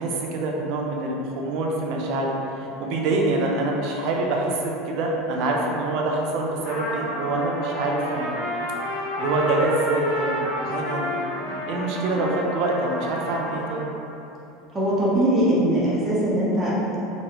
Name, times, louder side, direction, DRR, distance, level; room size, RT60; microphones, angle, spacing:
voice 1, 0.0-8.4 9.2-11.1 11.4-13.9, right 2 dB, 60° right, -1 dB, 0.5 m, -25 dB
Trumpet, 6.6-13.8, left 1 dB, 55° left, 1.1 m, -30 dB
voice 2, 14.7-17.0, right 1 dB, 20° right, -8 dB, 0.8 m, -21 dB
3.0 x 2.3 x 2.9 m, 2.9 s
supercardioid pair, 135°, 0 cm